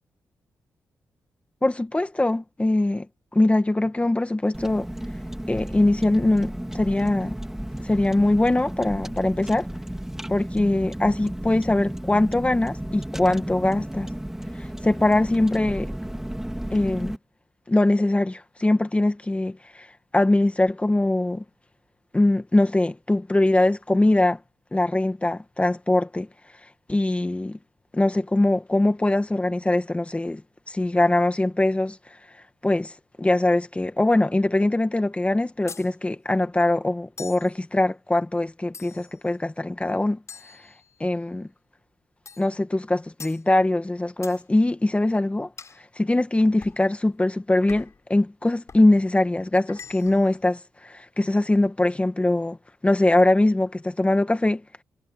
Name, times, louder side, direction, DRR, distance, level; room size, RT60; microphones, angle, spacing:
voice 1, 1.6-3.1 3.3-4.9 5.5-7.4 7.8-9.7 10.3-14.1 14.8-15.9 16.7-17.1 17.7-19.9 20.1-21.4 22.1-24.4 24.7-26.3 26.9-27.6 27.9-30.4 30.7-32.0 32.6-40.2 41.0-41.5 42.4-45.5 46.0-52.6 52.8-54.6, left 2 dB, 20° left, 1.9 m, -22 dB
Car, 4.5-17.2, right 1 dB, 5° right, 3.7 m, -33 dB
sound 1, 35.7-35.9 37.2-37.5 38.7-39.2 40.3-41.2 42.3-42.5 43.2-43.4 44.2-44.4 45.6-45.8 46.6-46.8 47.7-48.0 48.7-48.9 49.7-50.3, left 5 dB, 50° left, 7.4 m, -43 dB
cardioid pair, 60°, 7 cm